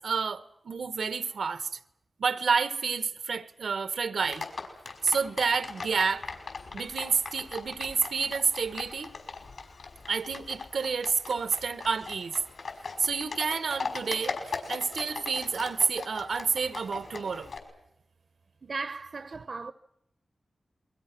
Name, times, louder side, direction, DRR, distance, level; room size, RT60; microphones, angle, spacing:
voice 1, 0.0-1.7 2.2-4.5 5.0-6.3 6.7-9.1 10.1-12.4 13.0-17.5, right 5 dB, 85° right, 1.5 m, -29 dB
Livestock farm animals working animals, 4.2-17.6, left 4 dB, 70° left, 5.6 m, -40 dB
voice 2, 18.6-19.7, right 4 dB, 50° right, 1.0 m, -36 dB
30.0 x 23.5 x 6.2 m
wide cardioid pair, 135°, 0 cm